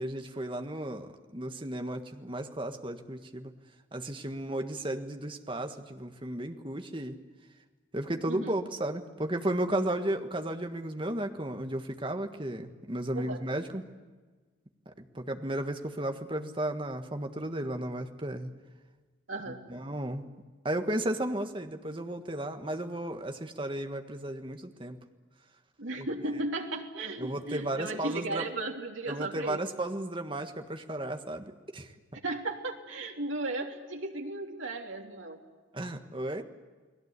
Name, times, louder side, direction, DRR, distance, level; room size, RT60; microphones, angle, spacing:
voice 1, 0.0-3.5 3.9-7.2 7.9-13.8 15.1-18.5 19.7-20.2 20.6-25.0 26.0-26.1 27.2-28.5 29.1-31.9 35.7-36.4, right 1 dB, 25° right, 6 dB, 1.5 m, -34 dB
voice 2, 19.3-19.6 25.8-29.6 32.2-35.4, right 2 dB, 75° right, 1 dB, 3.3 m, -35 dB
30.0 x 20.0 x 8.3 m, 1.4 s
head